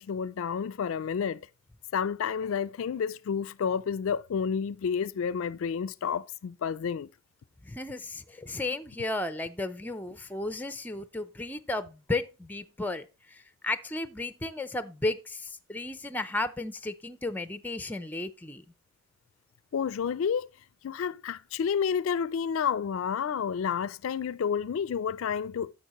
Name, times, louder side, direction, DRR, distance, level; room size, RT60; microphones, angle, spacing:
voice 1, 0.0-1.4 1.9-7.1 19.7-20.5 20.8-25.7, left 7 dB, 70° left, 0.4 m, -30 dB
voice 2, 7.6-18.6, left 2 dB, 10° left, 0.5 m, -34 dB
11.0 x 7.4 x 3.0 m
head